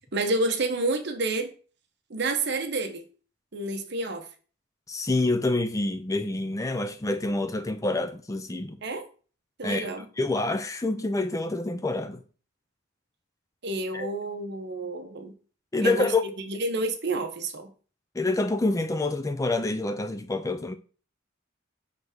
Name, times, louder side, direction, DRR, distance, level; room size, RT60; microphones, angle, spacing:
voice 1, 0.1-1.5 2.1-3.1 3.5-4.3 8.8-9.0 9.6-10.1 13.6-15.3 15.8-16.1 16.5-17.7, right 2 dB, 55° right, 0.9 m, -29 dB
voice 2, 4.9-8.8 9.6-9.9 10.2-12.2 13.9-14.1 15.7-16.2 18.2-20.8, left 2 dB, 15° left, 0.4 m, -27 dB
6.1 x 3.3 x 4.9 m
head